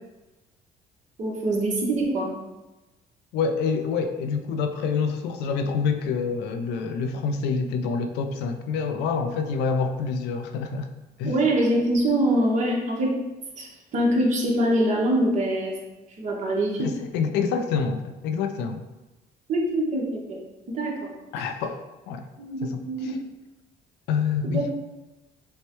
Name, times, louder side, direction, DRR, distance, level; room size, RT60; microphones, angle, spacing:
voice 1, 1.2-2.3 11.2-13.2 13.6-15.7 16.2-16.9 19.5-20.4 20.7-21.1 21.4-21.5 22.4-23.1 24.5-24.7, right 1 dB, 45° right, -2 dB, 1.1 m, -24 dB
voice 2, 3.3-10.9 11.2-11.4 16.8-18.8 21.3-21.8 22.1-22.3 22.6-23.2 24.1-24.7, left 5 dB, 85° left, 7 dB, 0.5 m, -27 dB
6.2 x 2.2 x 3.0 m, 1.1 s
cardioid pair, 110°, 17 cm